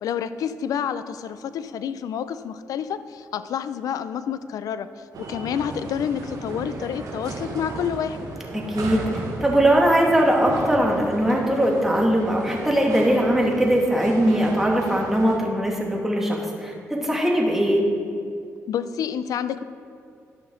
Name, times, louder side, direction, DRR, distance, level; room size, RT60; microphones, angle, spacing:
voice 1, 0.0-8.2 18.7-19.6, left 8 dB, 70° left, 13 dB, 0.4 m, -29 dB
sound 1, 5.1-15.4, right 3 dB, 70° right, 1.3 m, -35 dB
voice 2, 8.5-17.8, right 1 dB, 5° right, -2 dB, 2.2 m, -21 dB
12.0 x 6.0 x 3.8 m, 2.4 s
supercardioid pair, 55°, 6 cm